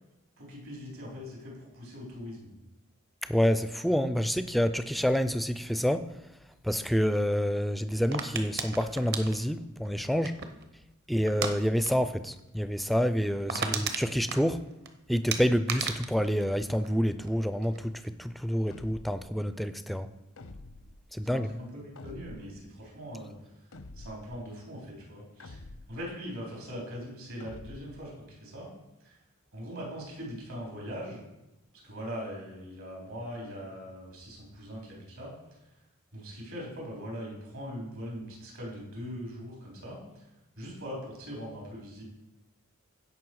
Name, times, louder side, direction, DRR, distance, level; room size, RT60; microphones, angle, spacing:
voice 1, 0.4-2.5 13.5-13.7 21.2-23.7 23.9-25.6 25.9-28.7 29.0-29.2 29.5-31.2 31.8-35.6 36.1-40.3 40.6-42.0, equal, 75° right, -3 dB, 4.2 m, -41 dB
voice 2, 3.3-6.1 6.6-10.3 11.1-14.6 15.1-20.1 21.1-21.5, equal, ahead, 11 dB, 0.4 m, -28 dB
sound 1, 8.1-10.7 11.3-11.6 11.8-12.1 12.4-12.5 12.9-13.0 13.2-14.9 15.3-17.3 17.6-18.1, right 6 dB, 50° right, 0.9 m, -34 dB
sound 2, 18.7-19.3 20.4-21.0 22.0-22.6 23.7-24.4 25.4-26.1 27.4-28.1, left 2 dB, 80° left, 0.8 m, -47 dB
15.5 x 5.4 x 4.8 m, 0.97 s
head